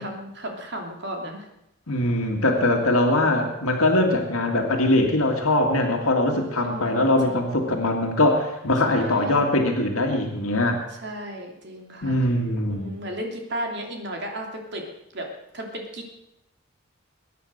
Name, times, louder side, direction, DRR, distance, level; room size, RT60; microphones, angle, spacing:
voice 1, 0.0-1.4 6.6-7.5 8.9-9.6 11.0-12.2 12.7-14.8 15.1-15.3 15.5-16.2, right 1 dB, 55° right, 1 dB, 3.1 m, -35 dB
voice 2, 1.9-10.8 12.0-12.9, left 1 dB, 85° left, 2 dB, 1.9 m, -22 dB
22.0 x 9.3 x 6.5 m, 0.84 s
head